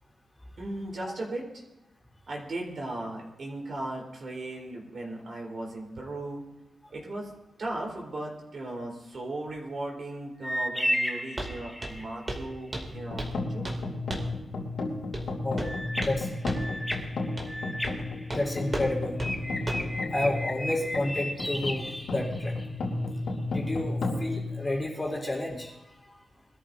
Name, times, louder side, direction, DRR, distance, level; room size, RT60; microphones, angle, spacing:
voice 1, 0.6-1.6 2.3-6.4 6.9-7.3 7.6-13.7, right 2 dB, 50° right, -2 dB, 3.9 m, -37 dB
sound 1, 10.4-12.1 15.6-18.8 19.2-22.6, equal, ahead, 1.3 m, -34 dB
Walk footsteps, 11.4-11.5 11.8-12.0 12.3-12.5 12.7-13.4 13.6-13.8 14.1-14.4 15.1-15.3 15.6-16.2 16.5-16.6 16.9-17.0 17.4-17.5 17.8-18.0 18.3-18.4 18.7-18.9 19.2-19.3 19.7-19.9, right 1 dB, 30° right, 2.6 m, -35 dB
sound 2, 12.9-25.3, left 2 dB, 75° left, 3.0 m, -33 dB
voice 2, 18.3-19.2 20.1-22.6 23.5-25.7, left 1 dB, 20° left, -2 dB, 3.8 m, -30 dB
23.5 x 13.0 x 2.7 m, 0.94 s
wide cardioid pair, 120°, 0 cm